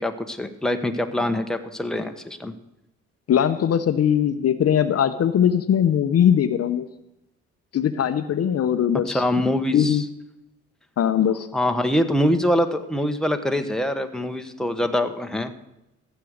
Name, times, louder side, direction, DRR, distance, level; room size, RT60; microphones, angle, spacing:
voice 1, 0.0-2.5 9.1-10.0 11.5-15.5, left 1 dB, ahead, 6 dB, 1.2 m, -24 dB
voice 2, 3.3-6.9 7.7-9.2 9.7-10.0 11.0-11.5, left 9 dB, 55° left, 11 dB, 0.8 m, -20 dB
15.0 x 8.3 x 6.5 m, 0.89 s
cardioid pair, 90°, 30 cm